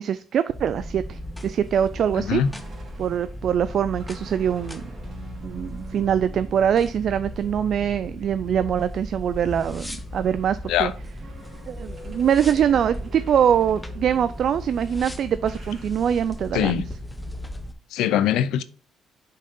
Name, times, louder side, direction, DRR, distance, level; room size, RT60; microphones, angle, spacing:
voice 1, 0.0-2.4 3.0-4.8 5.4-10.9 11.7-16.8, right 8 dB, 60° right, 0.3 m, -23 dB
sound 1, 0.5-17.7, left 1 dB, 10° left, 0.7 m, -37 dB
sound 2, 0.9-9.3 9.6-16.5, right 3 dB, 40° right, 2.8 m, -47 dB
voice 2, 2.2-2.5 10.7-10.9 16.5-16.9 17.9-18.6, left 10 dB, 85° left, 0.4 m, -22 dB
5.4 x 3.8 x 5.2 m
cardioid pair, 100°, 0 cm